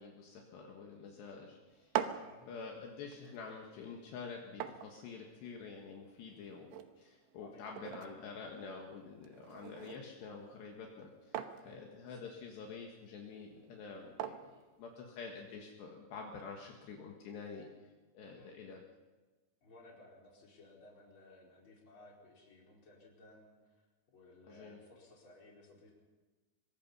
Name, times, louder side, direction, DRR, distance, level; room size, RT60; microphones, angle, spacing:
voice 1, 0.0-1.9 2.5-17.7 18.1-18.8 24.5-24.8, left 5 dB, 70° left, 1 dB, 3.8 m, -48 dB
sound 1, 1.7-15.6, right 10 dB, 85° right, 3.4 m, -46 dB
voice 2, 2.2-2.5 7.4-7.8 11.6-12.3 18.4-18.5 19.6-23.8 24.1-26.0, left 2 dB, 25° left, -2 dB, 5.0 m, -59 dB
24.0 x 22.5 x 5.6 m, 1.3 s
omnidirectional pair, 5.3 m